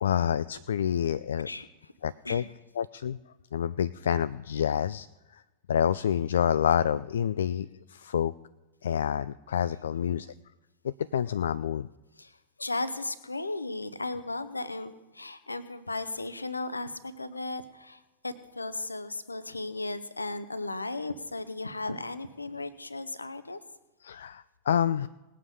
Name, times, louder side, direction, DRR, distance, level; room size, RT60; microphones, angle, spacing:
voice 1, 0.0-1.5 2.0-2.4 2.8-3.2 3.5-5.1 5.3-5.4 5.7-8.3 8.8-10.3 10.8-11.9 24.0-25.1, left 9 dB, 65° left, 15 dB, 0.3 m, -28 dB
voice 2, 1.4-1.9 2.2-2.5 9.9-10.3 12.2-23.6, left 2 dB, 80° left, 13 dB, 0.8 m, -36 dB
19.5 x 7.9 x 4.9 m, 1.1 s
figure-of-eight pair, 90°, 0 cm